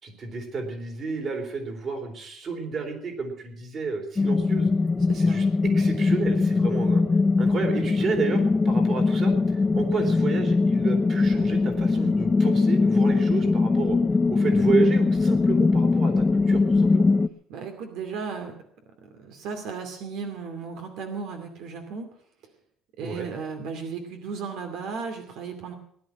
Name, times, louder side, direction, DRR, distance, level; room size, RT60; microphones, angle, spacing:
voice 1, 0.0-4.7 5.1-7.0 7.4-14.0 14.3-17.1 23.0-23.3, right 4 dB, 35° right, 5 dB, 3.7 m, -31 dB
sound 1, 4.2-17.3, left 3 dB, 15° left, 0.6 m, -21 dB
voice 2, 5.1-5.4 17.5-18.5 19.0-22.1 23.0-25.7, right 5 dB, 65° right, 5 dB, 2.5 m, -35 dB
19.0 x 11.5 x 6.1 m, 0.65 s
cardioid pair, 170°, 0 cm